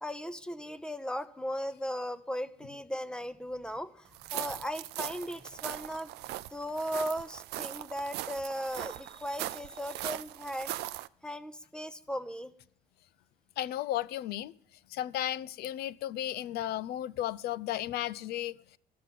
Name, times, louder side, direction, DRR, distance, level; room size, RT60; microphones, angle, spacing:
voice 1, 0.0-6.1 6.5-10.7 11.2-12.5, equal, 5° left, 0.7 m, -37 dB
sound 1, 4.1-11.1, right 16 dB, 75° right, 0.4 m, -40 dB
voice 2, 13.6-14.5 14.9-18.8, left 13 dB, 70° left, 0.4 m, -34 dB
12.5 x 6.7 x 7.3 m
cardioid pair, 110°, 17 cm